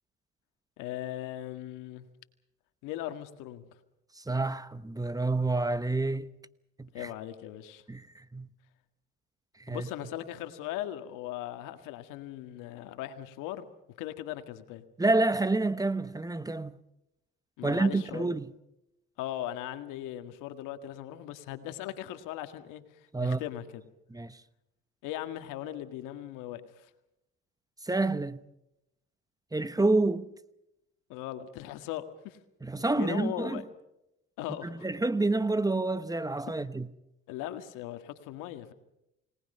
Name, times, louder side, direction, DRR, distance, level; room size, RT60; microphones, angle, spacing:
voice 1, 0.8-2.1 2.8-3.7 6.9-7.8 9.7-13.7 14.0-14.8 17.6-18.3 19.2-23.8 25.0-26.9 31.1-32.4 32.8-33.6 34.4-34.9 37.3-38.7, left 13 dB, 80° left, 1.9 m, -39 dB
voice 2, 4.2-6.3 6.8-7.1 7.9-8.5 9.6-9.9 15.0-16.8 17.6-18.5 23.1-23.4 24.1-24.4 27.8-28.4 29.5-30.3 32.6-33.6 34.8-36.9, right 2 dB, 10° right, 1.0 m, -28 dB
30.0 x 19.0 x 5.6 m
supercardioid pair, 80°, 31 cm